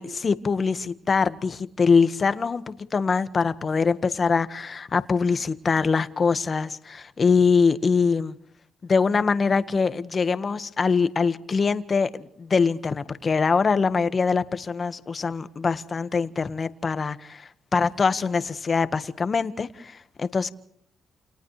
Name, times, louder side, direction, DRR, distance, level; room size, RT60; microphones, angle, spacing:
voice 1, 0.0-8.3 8.8-20.5, left 5 dB, 35° left, 1.6 m, -23 dB
30.0 x 29.5 x 3.4 m
cardioid pair, 90°, 0 cm